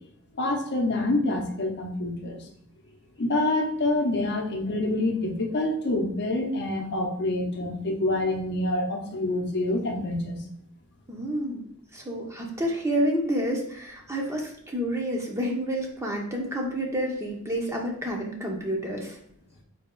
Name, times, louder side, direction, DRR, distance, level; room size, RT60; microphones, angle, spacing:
voice 1, 0.4-2.5 3.2-10.4, left 2 dB, 50° left, 2 dB, 0.7 m, -27 dB
voice 2, 11.1-11.7 11.9-19.2, equal, 15° right, 0 dB, 0.7 m, -29 dB
4.2 x 2.9 x 3.7 m, 0.69 s
head